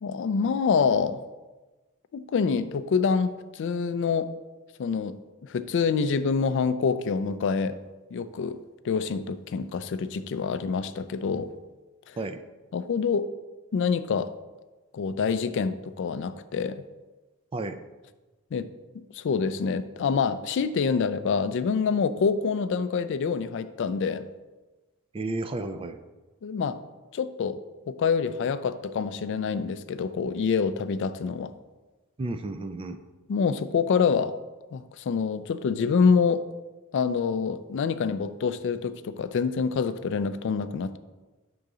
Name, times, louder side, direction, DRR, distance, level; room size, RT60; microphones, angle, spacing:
voice 1, 0.0-1.2 2.1-4.3 4.8-7.8 8.1-8.6 8.8-11.5 12.1-12.2 12.7-13.3 13.7-14.3 14.9-16.8 18.5-18.7 19.1-24.3 26.4-26.8 27.1-27.6 27.9-31.5 33.3-34.3 34.7-36.4 36.9-41.0, left 5 dB, 55° left, 13 dB, 0.3 m, -26 dB
voice 2, 25.1-26.0 32.2-33.0, right 2 dB, 25° right, 9 dB, 0.3 m, -32 dB
6.7 x 3.8 x 4.8 m, 1.2 s
head